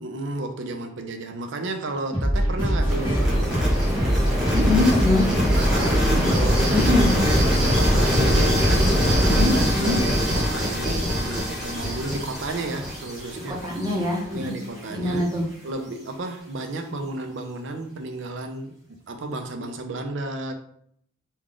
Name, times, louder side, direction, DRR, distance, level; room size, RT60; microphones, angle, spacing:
voice 1, 0.0-3.6 5.4-13.6 14.3-15.3 15.6-20.5, right 2 dB, 65° right, 5 dB, 0.5 m, -32 dB
sound 1, 2.1-10.5, equal, 25° left, 1.3 m, -23 dB
sound 2, 2.9-14.8, equal, ahead, 1.1 m, -24 dB
voice 2, 4.5-5.3 5.8-6.3 6.7-7.1 9.2-10.0 13.5-14.5 14.9-15.4, left 2 dB, 20° right, -2 dB, 0.7 m, -24 dB
3.6 x 2.2 x 3.5 m, 0.65 s
head